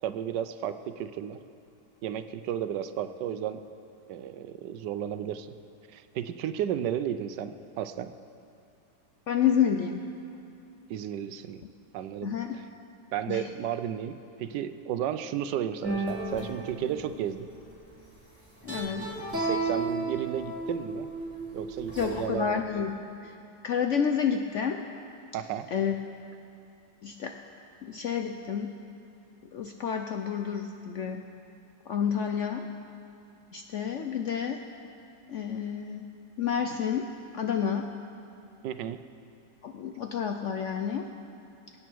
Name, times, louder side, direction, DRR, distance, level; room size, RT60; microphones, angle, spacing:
voice 1, 0.0-1.4 2.0-3.6 4.1-5.5 5.9-8.1 10.9-11.6 11.9-12.3 13.1-17.5 19.4-21.1 21.5-22.6 25.3-25.7 38.6-39.0, right 10 dB, 80° right, 11 dB, 1.2 m, -33 dB
voice 2, 9.3-10.0 12.2-12.6 13.3-13.5 18.6-19.1 22.0-22.9 23.2-23.3 23.6-24.8 25.7-25.9 27.0-27.3 27.8-28.7 29.5-31.2 31.9-32.7 33.5-34.6 35.3-36.1 36.4-37.9 39.6-41.1, left 7 dB, 65° left, 4 dB, 0.7 m, -29 dB
sound 1, 15.8-17.5 18.6-22.2, right 2 dB, 5° right, 4.1 m, -33 dB
22.0 x 9.1 x 4.6 m, 2.7 s
omnidirectional pair, 1.9 m